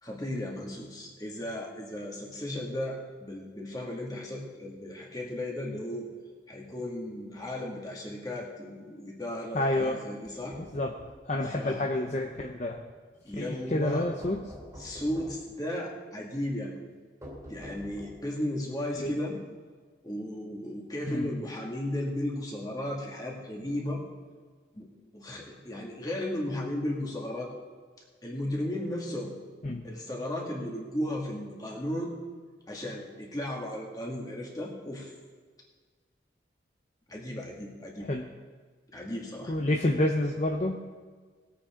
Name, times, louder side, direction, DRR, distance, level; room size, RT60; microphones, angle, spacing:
voice 1, 0.0-6.1 6.5-10.6 11.4-11.9 13.2-14.1 14.8-16.7 17.5-19.4 20.0-24.0 24.7-24.9 25.1-27.5 28.2-29.4 29.8-32.1 32.7-35.1 37.1-38.1 38.9-39.5, left 1 dB, 20° left, -2 dB, 2.1 m, -35 dB
voice 2, 9.5-10.0 10.6-10.9 11.3-12.8 13.4-14.4 18.9-19.1 21.1-21.3 29.6-29.9 38.0-38.3 39.5-40.8, left 1 dB, 40° left, 2 dB, 0.7 m, -29 dB
sound 1, 10.2-11.2 14.2-15.5 17.2-18.4, equal, 15° right, 2.5 m, -46 dB
19.5 x 8.8 x 3.7 m, 1.5 s
head